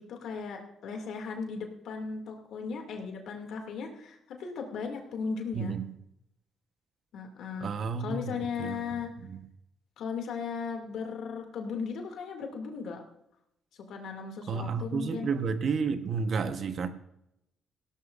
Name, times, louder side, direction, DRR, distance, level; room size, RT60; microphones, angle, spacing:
voice 1, 0.0-5.8 7.1-7.7 8.0-9.1 10.0-13.0 13.9-15.3, left 5 dB, 75° left, 2 dB, 2.5 m, -37 dB
voice 2, 5.5-5.9 7.6-8.8 9.2-9.4 14.5-16.9, right 5 dB, 55° right, 9 dB, 1.1 m, -31 dB
17.5 x 12.5 x 2.6 m, 0.82 s
cardioid pair, 90°, 0 cm